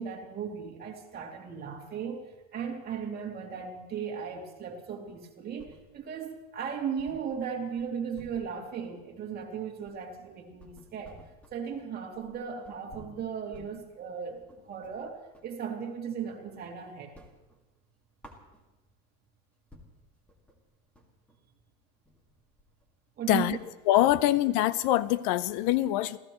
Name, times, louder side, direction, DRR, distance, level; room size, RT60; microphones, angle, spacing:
voice 1, 0.0-2.2 2.5-11.2 11.5-17.1 23.2-23.6, right 7 dB, 30° right, -1 dB, 2.8 m, -36 dB
sound 1, 5.1-6.2 6.5-6.6 7.0-15.6 16.0-16.7 17.0-19.0 19.4-19.5 19.7-23.9, left 1 dB, 5° left, 2.1 m, -55 dB
voice 2, 23.9-26.2, left 14 dB, 65° left, 17 dB, 0.7 m, -24 dB
29.0 x 15.5 x 3.1 m, 1.1 s
cardioid pair, 145°, 31 cm